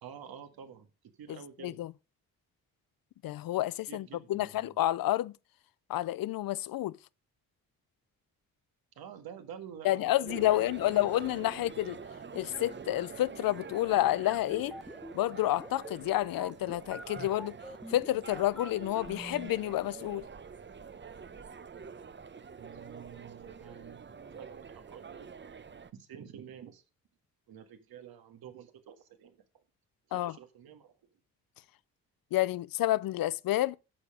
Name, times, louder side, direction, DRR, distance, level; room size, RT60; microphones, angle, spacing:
voice 1, 0.0-0.9 1.2-1.8 3.9-4.8 8.9-10.6 11.0-11.8 22.6-25.3 25.9-26.8 27.5-29.6 30.1-30.9, right 8 dB, 75° right, 1.8 m, -49 dB
voice 2, 3.2-5.3 5.9-7.0 9.8-12.0 12.3-14.8 15.1-17.6 17.9-20.3 30.1-30.3 32.3-33.8, left 15 dB, 65° left, 0.5 m, -29 dB
sound 1, 10.3-25.9, right 6 dB, 30° right, 0.8 m, -46 dB
sound 2, 14.3-19.5, equal, ahead, 0.4 m, -45 dB
9.8 x 6.7 x 5.0 m
supercardioid pair, 55°, 37 cm